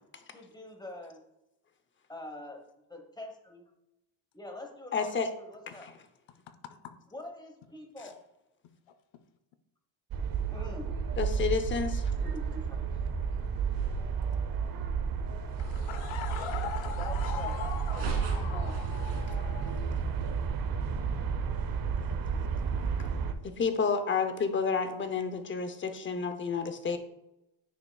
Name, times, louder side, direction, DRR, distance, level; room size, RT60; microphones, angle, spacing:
voice 1, 0.3-1.2 2.1-2.6 2.9-3.7 4.3-5.9 7.1-8.2 10.5-10.9 12.2-13.0 17.0-17.5 17.9-18.8, left 1 dB, 10° left, 1.1 m, -45 dB
voice 2, 4.9-5.3 5.8-5.9 11.2-12.1 23.4-27.0, left 5 dB, 25° left, 0.6 m, -30 dB
sound 1, 10.1-23.3, right 6 dB, 45° right, 0.7 m, -32 dB
sound 2, 15.5-20.5, right 5 dB, 80° right, 1.8 m, -39 dB
voice 3, 15.6-19.8, left 8 dB, 70° left, 0.7 m, -40 dB
9.8 x 5.7 x 2.3 m
cardioid pair, 140°, 48 cm